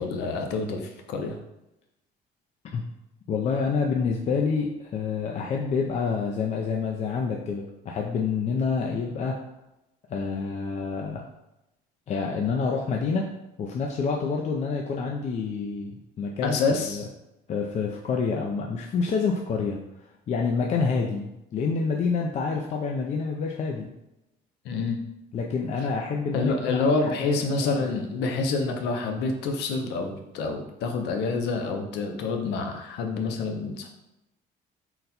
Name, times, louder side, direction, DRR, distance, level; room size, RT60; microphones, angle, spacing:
voice 1, 0.0-1.4 16.4-17.1 24.6-25.0 26.3-33.9, left 3 dB, 85° left, 4 dB, 0.6 m, -27 dB
voice 2, 3.3-9.4 10.1-11.3 12.1-13.3 13.6-15.9 16.2-16.6 16.9-17.0 17.5-19.8 20.3-23.9 25.3-27.1 27.5-27.9, left 5 dB, 40° left, 0 dB, 0.4 m, -27 dB
4.0 x 2.2 x 4.1 m, 0.92 s
cardioid pair, 110°, 17 cm